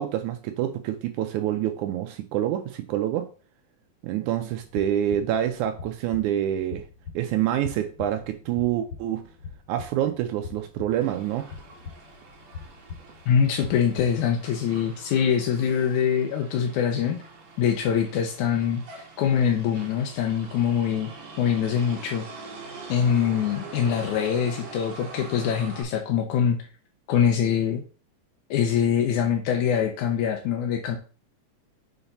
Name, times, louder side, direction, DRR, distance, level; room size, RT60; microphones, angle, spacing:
voice 1, 0.0-3.3 4.0-6.8 7.1-9.3 9.7-11.5, right 11 dB, 85° right, 7 dB, 1.7 m, -27 dB
sound 1, 4.6-14.4, left 6 dB, 45° left, 2.0 m, -43 dB
Motor vehicle (road), 11.0-25.8, right 3 dB, 60° right, 2.4 m, -44 dB
voice 2, 13.3-17.2 17.6-21.1 21.4-22.3 22.9-26.6 27.1-27.8 28.5-31.0, left 8 dB, 75° left, 1 dB, 2.0 m, -24 dB
7.2 x 3.9 x 4.1 m, 0.39 s
omnidirectional pair, 4.0 m